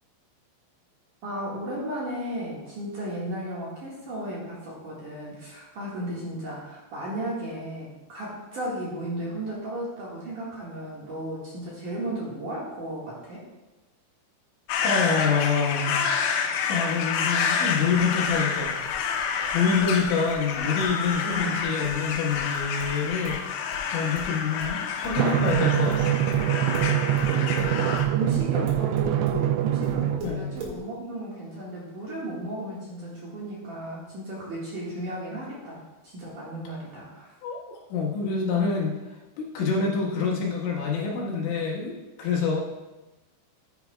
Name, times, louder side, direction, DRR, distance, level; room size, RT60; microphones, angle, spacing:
voice 1, 1.2-13.4 21.2-21.7 27.3-37.3, right 1 dB, 55° right, -6 dB, 2.6 m, -34 dB
sound 1, 14.7-28.1, left 6 dB, 90° left, 3.2 m, -28 dB
voice 2, 14.8-16.0 16.7-18.9 19.3-26.1 30.2-30.5 37.4-39.0 39.4-42.6, left 5 dB, 75° left, -3 dB, 3.8 m, -27 dB
sound 2, 17.9-23.4 23.7-29.4 29.8-30.8, right 1 dB, 70° right, 4.1 m, -42 dB
Drum, 25.2-30.2, right 12 dB, 85° right, 2.5 m, -24 dB
14.5 x 9.4 x 2.3 m, 1.1 s
omnidirectional pair, 5.6 m